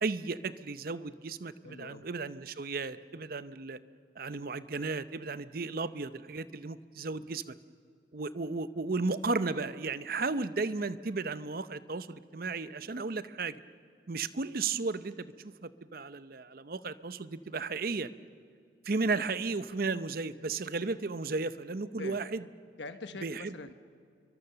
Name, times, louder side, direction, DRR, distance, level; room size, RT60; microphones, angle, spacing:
voice 1, 0.0-3.8 4.2-7.6 8.1-13.6 14.1-18.1 18.8-22.4 23.2-23.4, right 3 dB, 50° right, 14 dB, 0.7 m, -34 dB
voice 2, 1.6-2.1 7.1-7.4 22.0-22.2 22.8-23.7, left 3 dB, 75° left, 9 dB, 1.1 m, -44 dB
29.0 x 23.5 x 6.8 m, 2.3 s
head